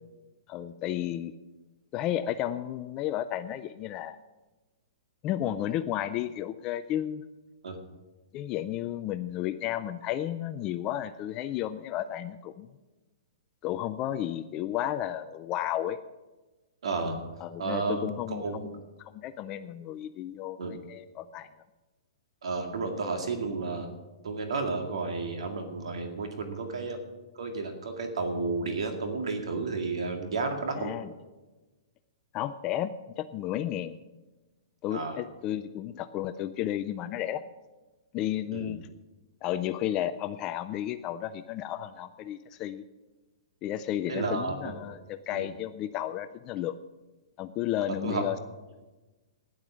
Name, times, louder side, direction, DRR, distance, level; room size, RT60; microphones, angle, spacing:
voice 1, 0.5-1.3 1.9-4.2 5.2-7.2 8.3-12.7 13.6-16.0 17.4-18.7 19.0-21.5 30.8-31.1 32.3-34.0 34.8-37.4 38.1-38.8 39.4-42.9 43.6-46.7 47.4-48.4, left 12 dB, 20° left, 11 dB, 0.3 m, -33 dB
voice 2, 16.8-17.3 17.6-18.7 20.6-20.7 22.4-23.9 24.2-27.0 27.4-30.9 34.9-35.2 38.5-38.8 44.1-44.8 45.3-45.5 48.0-48.3, right 3 dB, 85° right, 4 dB, 2.0 m, -32 dB
12.5 x 10.0 x 6.2 m, 1.2 s
hypercardioid pair, 170°, 3 cm